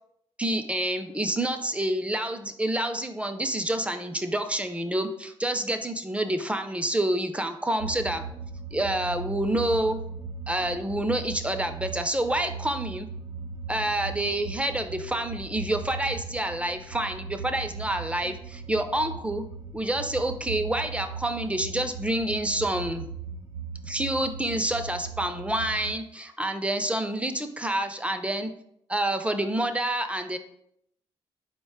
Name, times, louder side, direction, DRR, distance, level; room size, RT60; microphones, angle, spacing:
voice 1, 0.4-8.2 8.7-10.0 10.5-13.1 13.7-19.4 19.7-23.0 23.8-28.5 28.9-30.4, right 1 dB, 10° right, 7 dB, 0.4 m, -28 dB
sound 1, 7.8-25.9, right 5 dB, 90° right, 0.6 m, -38 dB
4.1 x 2.2 x 4.6 m, 0.73 s
cardioid pair, 65°, 12 cm